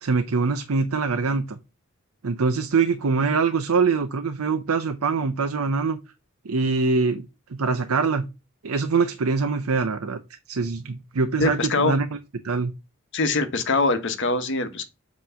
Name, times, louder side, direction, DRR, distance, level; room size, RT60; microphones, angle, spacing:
voice 1, 0.0-1.6 2.2-6.0 6.4-7.2 7.5-8.3 8.6-10.2 10.5-12.0 12.4-12.7, right 4 dB, 80° right, 0.6 m, -23 dB
voice 2, 11.4-12.0 13.1-14.9, left 3 dB, 60° left, 1.0 m, -23 dB
7.8 x 3.0 x 5.6 m
head